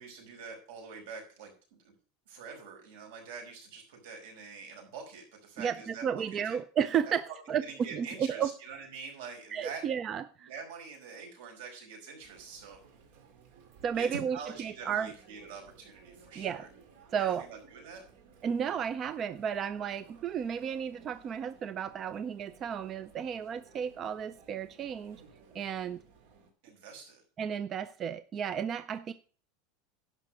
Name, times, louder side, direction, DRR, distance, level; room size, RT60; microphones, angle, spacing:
voice 1, 0.0-1.5 1.8-1.9 2.3-6.6 7.0-7.1 7.6-9.8 10.4-12.8 13.9-16.7 17.2-18.1 26.6-27.2, right 5 dB, 80° right, 1 dB, 5.3 m, -45 dB
voice 2, 5.6-7.6 7.9-8.5 9.5-10.5 13.8-15.1 16.4-16.7 17.1-17.5 18.4-25.2 25.5-26.0 27.4-29.1, right 8 dB, 25° right, 14 dB, 0.4 m, -33 dB
Chatter, 12.2-26.5, right 5 dB, 60° right, 2.2 m, -58 dB
11.0 x 5.6 x 6.3 m, 0.39 s
supercardioid pair, 175°, 0 cm